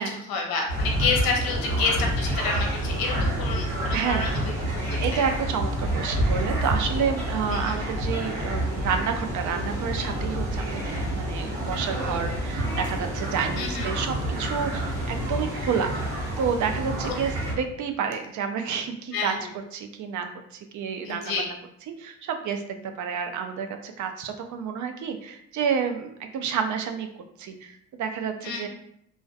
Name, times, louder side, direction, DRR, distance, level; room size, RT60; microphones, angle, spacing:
voice 1, 0.0-4.3 4.7-5.2 7.5-7.7 13.6-13.9 19.1-19.5 21.0-21.5 28.4-28.7, left 4 dB, 75° left, 1 dB, 0.6 m, -29 dB
sound 1, 0.7-17.5, right 1 dB, 85° right, 0.9 m, -28 dB
voice 2, 3.9-4.4 5.0-15.9 16.4-19.3 19.7-21.6 22.0-27.1 27.4-28.7, right 6 dB, 55° right, 6 dB, 0.4 m, -29 dB
2.5 x 2.1 x 2.4 m, 0.72 s
hypercardioid pair, 55°, 36 cm